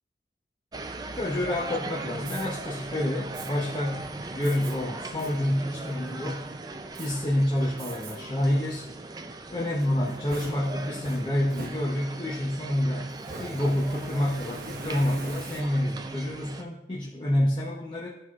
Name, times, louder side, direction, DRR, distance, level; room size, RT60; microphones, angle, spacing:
sound 1, 0.7-16.6, right 2 dB, 20° right, 0.4 m, -39 dB
voice 1, 1.1-4.0 4.3-6.5 7.0-8.9 9.5-18.1, left 1 dB, 25° left, -4 dB, 0.8 m, -28 dB
Fire, 2.2-2.5 3.3-3.5 4.4-4.7 5.2-5.3 5.8-6.3 6.9-7.1 7.8-8.2 8.6-8.7 9.8-12.3 13.2-16.0, right 2 dB, 55° right, 0.9 m, -42 dB
13.5 x 4.6 x 2.4 m, 0.86 s
head